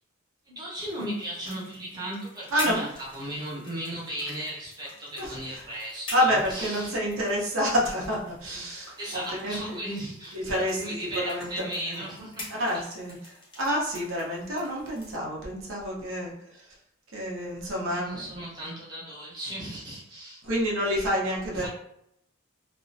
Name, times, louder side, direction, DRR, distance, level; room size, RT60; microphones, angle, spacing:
voice 1, 0.5-7.0 9.0-12.5 12.7-12.8 17.8-20.4 21.5-21.7, right 1 dB, 20° right, -7 dB, 0.7 m, -36 dB
sound 1, 0.8-15.1, left 1 dB, 25° left, 0.7 m, -45 dB
voice 2, 2.5-2.9 5.2-5.3 6.1-9.6 10.3-10.8 11.1-11.5 12.6-16.3 17.1-18.2 20.4-21.7, equal, 70° right, -3 dB, 0.7 m, -28 dB
2.3 x 2.1 x 2.5 m, 0.76 s
head